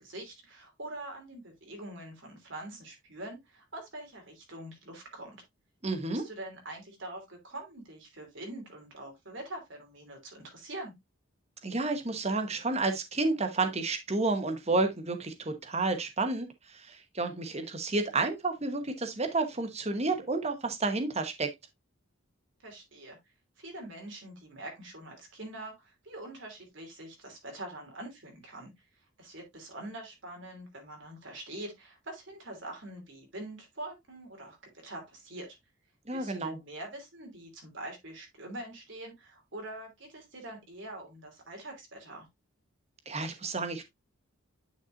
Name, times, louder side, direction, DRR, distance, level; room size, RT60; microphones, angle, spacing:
voice 1, 0.0-5.4 6.1-10.9 22.6-23.2 23.6-28.7 29.2-35.6 36.1-42.3, right 1 dB, 55° right, 2.9 m, -44 dB
voice 2, 5.8-6.3 11.6-21.5 36.1-36.6 43.1-43.8, right 3 dB, 30° right, 1.1 m, -31 dB
9.8 x 5.8 x 2.5 m
head